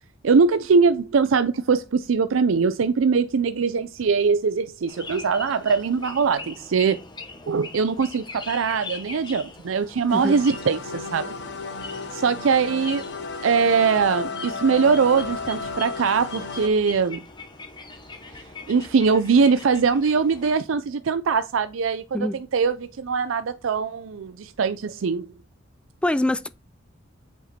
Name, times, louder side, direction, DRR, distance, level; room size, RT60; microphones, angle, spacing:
voice 1, 0.2-7.0 7.5-11.4 12.1-13.0 13.4-17.2 18.7-25.3, right 5 dB, 80° right, 0.5 m, -22 dB
sound 1, 4.9-20.6, left 3 dB, 25° left, 1.1 m, -42 dB
sound 2, 10.1-16.7, left 4 dB, 60° left, 0.9 m, -33 dB
voice 2, 26.0-26.5, left 1 dB, 5° left, 0.3 m, -24 dB
7.9 x 5.1 x 4.2 m
head